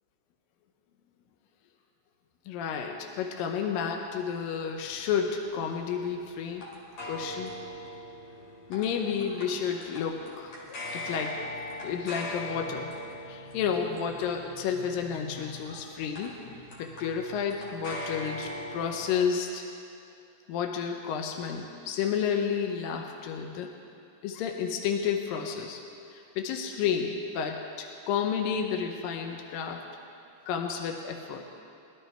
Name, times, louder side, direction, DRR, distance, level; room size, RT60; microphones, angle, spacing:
voice 1, 2.5-6.7 7.1-7.6 8.7-10.6 10.9-11.4 11.8-12.9 13.3-16.4 16.8-19.6 20.5-23.7 24.2-25.8 26.1-29.8 30.5-31.6, left 7 dB, 80° left, 3 dB, 2.1 m, -31 dB
sound 1, 4.8-19.2, left 1 dB, 50° left, 3.2 m, -41 dB
22.5 x 12.0 x 3.4 m, 2.6 s
omnidirectional pair, 5.1 m